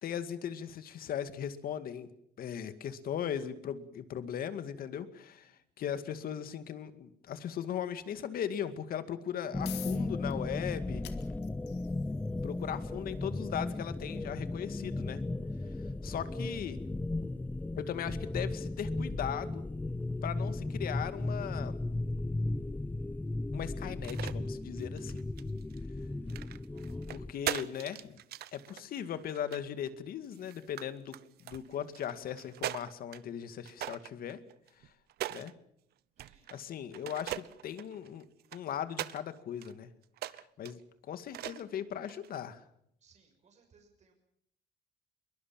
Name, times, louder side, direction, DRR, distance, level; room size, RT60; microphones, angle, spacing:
voice 1, 0.0-2.1 2.4-11.0 12.4-15.2 16.0-16.8 17.8-19.6 20.2-21.8 23.5-25.2 27.1-28.2 28.5-31.2 31.4-34.4 35.3-35.5 36.5-38.2 38.5-39.9 40.3-42.6, left 9 dB, 60° left, 11 dB, 2.1 m, -38 dB
sound 1, 9.5-27.3, left 2 dB, 10° left, 0.8 m, -36 dB
sound 2, 9.6-24.0, left 14 dB, 85° left, 2.1 m, -55 dB
sound 3, 23.9-24.3 24.8-25.8 26.3-29.9 30.3-30.9 31.1-33.2 33.7-35.5 36.2-36.6 36.9-39.2 39.6-39.7 40.2-40.7 41.3-41.7 42.1-42.4, right 14 dB, 70° right, 0.9 m, -41 dB
voice 2, 26.7-27.1 36.2-36.5 43.0-44.1, right 5 dB, 45° right, 3 dB, 6.1 m, -66 dB
22.5 x 21.5 x 7.4 m, 0.72 s
cardioid pair, 110°, 17 cm